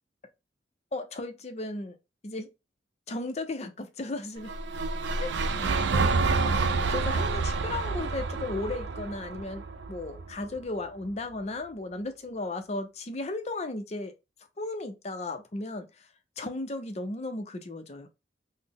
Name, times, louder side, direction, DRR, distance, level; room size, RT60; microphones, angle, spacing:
voice 1, 0.9-2.0 2.2-2.5 3.1-4.5 5.2-5.3 6.5-9.6 9.9-14.1 14.6-16.1 16.4-18.1, left 2 dB, 35° left, 0.5 m, -35 dB
sound 1, 4.4-10.6, right 4 dB, 65° right, 0.4 m, -28 dB
4.0 x 2.0 x 3.4 m
head